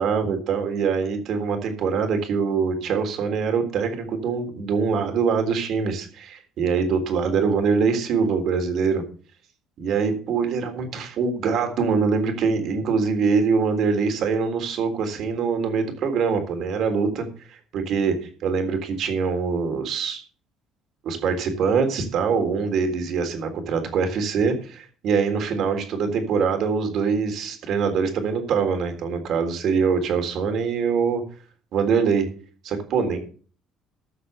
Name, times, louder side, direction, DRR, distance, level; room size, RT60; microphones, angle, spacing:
voice 1, 0.0-9.0 9.8-20.2 21.0-31.2 31.7-32.3 32.6-33.2, right 5 dB, 60° right, 6 dB, 3.6 m, -24 dB
14.5 x 6.1 x 6.7 m, 0.41 s
cardioid pair, 110°, 0 cm